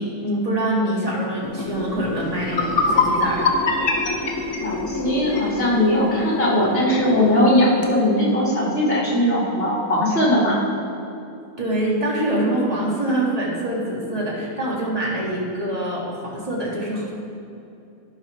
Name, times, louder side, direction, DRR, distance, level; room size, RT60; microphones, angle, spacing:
voice 1, 0.0-3.5 11.6-17.1, right 1 dB, 30° right, -4 dB, 2.0 m, -25 dB
sound 1, 1.4-7.4 7.8-7.9, left 3 dB, 15° left, 1.0 m, -30 dB
sound 2, 2.0-2.1 2.4-5.5, left 3 dB, 65° left, 1.4 m, -22 dB
voice 2, 4.6-10.6, left 1 dB, 45° left, -5 dB, 2.4 m, -19 dB
11.5 x 4.9 x 5.8 m, 2.7 s
omnidirectional pair, 1.4 m